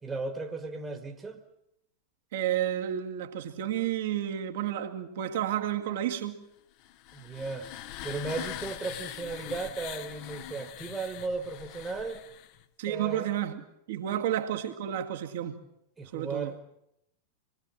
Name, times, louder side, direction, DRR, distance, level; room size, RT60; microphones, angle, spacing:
voice 1, 0.0-1.4 7.1-7.7 8.0-12.2 12.9-13.3 14.1-14.3 16.0-16.8, right 3 dB, 15° right, 1.7 m, -36 dB
voice 2, 2.3-6.4 12.8-13.5 13.9-15.6 16.1-16.5, right 11 dB, 55° right, 1.9 m, -31 dB
sound 1, 6.8-12.6, left 12 dB, 45° left, 1.1 m, -42 dB
25.5 x 19.5 x 7.5 m
figure-of-eight pair, 90°, 0 cm